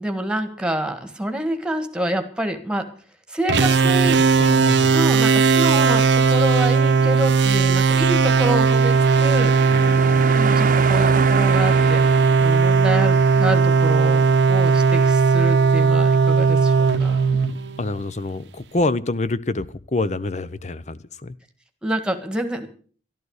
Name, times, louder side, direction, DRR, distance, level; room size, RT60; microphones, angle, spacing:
voice 1, 0.0-2.9 3.3-4.2 4.9-9.5 10.3-12.0 12.4-17.2 21.8-22.7, right 1 dB, 5° right, 1.6 m, -27 dB
voice 2, 3.5-4.0 4.4-5.0 9.7-10.2 17.8-21.3, left 2 dB, 40° left, 0.7 m, -27 dB
sound 1, 3.5-18.1, right 5 dB, 85° right, 0.9 m, -17 dB
sound 2, 7.4-14.1, right 5 dB, 50° right, 0.9 m, -29 dB
12.5 x 12.5 x 6.4 m
head